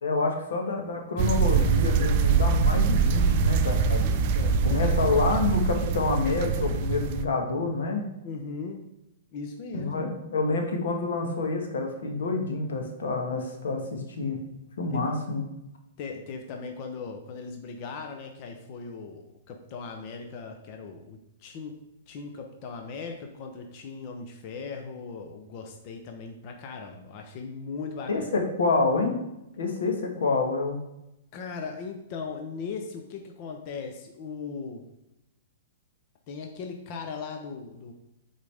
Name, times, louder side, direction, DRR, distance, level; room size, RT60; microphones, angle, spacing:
voice 1, 0.0-4.1 4.6-8.0 9.7-14.4 14.8-15.4 28.1-29.2 29.6-30.8, left 3 dB, 90° left, 3 dB, 1.4 m, -27 dB
sound 1, 1.2-7.2, right 5 dB, 30° right, 0.4 m, -24 dB
voice 2, 4.0-5.1 8.2-8.8 9.3-10.1 14.9-15.0 16.0-21.8 22.1-28.3 31.3-34.8 36.3-37.9, left 5 dB, 30° left, 4 dB, 0.6 m, -38 dB
8.3 x 4.0 x 3.4 m, 0.88 s
hypercardioid pair, 175°, 0 cm